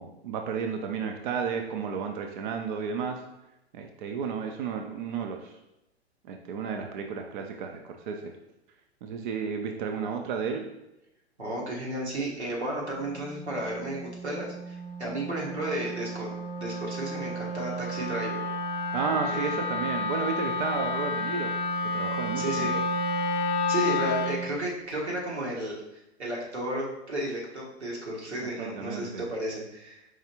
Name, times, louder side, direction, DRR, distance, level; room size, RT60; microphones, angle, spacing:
voice 1, 0.0-3.2 3.7-5.5 6.2-8.3 9.0-10.7 18.9-21.5 21.8-22.7 28.4-29.2, right 6 dB, 50° right, 4 dB, 0.5 m, -32 dB
voice 2, 11.4-18.4 19.3-19.5 22.3-22.8 23.7-30.1, right 1 dB, 90° right, -4 dB, 1.3 m, -33 dB
Wind instrument woodwind instrument, 12.9-24.5, left 2 dB, 25° left, 0.5 m, -31 dB
4.8 x 3.2 x 2.8 m, 0.91 s
figure-of-eight pair, 110°, 33 cm